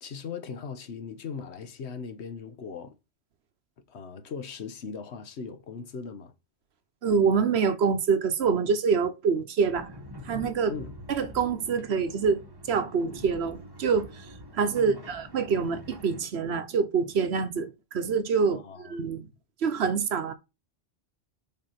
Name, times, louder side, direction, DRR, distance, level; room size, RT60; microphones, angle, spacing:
voice 1, 0.0-3.0 3.9-6.3 10.7-10.9 14.8-15.0 18.5-19.0, left 6 dB, 65° left, 1.2 m, -39 dB
voice 2, 7.0-9.9 10.2-10.7 11.1-12.4 12.7-14.3 14.5-19.3 19.6-20.3, right 5 dB, 60° right, 1.1 m, -26 dB
sound 1, 9.6-16.2, equal, 20° right, 1.0 m, -45 dB
5.7 x 4.6 x 5.7 m
omnidirectional pair, 1.2 m